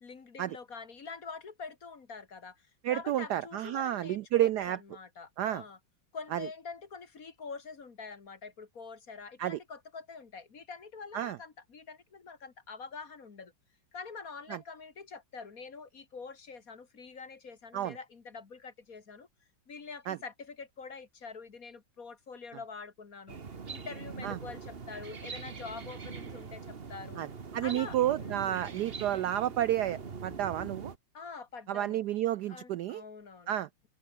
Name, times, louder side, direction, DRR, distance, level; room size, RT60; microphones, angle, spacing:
voice 1, 0.0-5.8 6.1-13.5 13.9-19.3 19.7-23.4 23.7-27.2 27.6-28.7 31.1-32.0 32.5-33.5, left 5 dB, 45° left, 2.3 m, -45 dB
voice 2, 2.8-4.8 5.4-5.6 6.3-6.5 9.4-9.6 11.1-11.4 14.5-14.6 17.7-18.0 20.1-20.2 24.2-24.4 27.2-27.3 27.5-30.9 31.7-33.0 33.5-33.7, right 12 dB, 70° right, 1.0 m, -31 dB
sound 1, 23.3-31.0, right 5 dB, 30° right, 1.5 m, -43 dB
omnidirectional pair, 2.2 m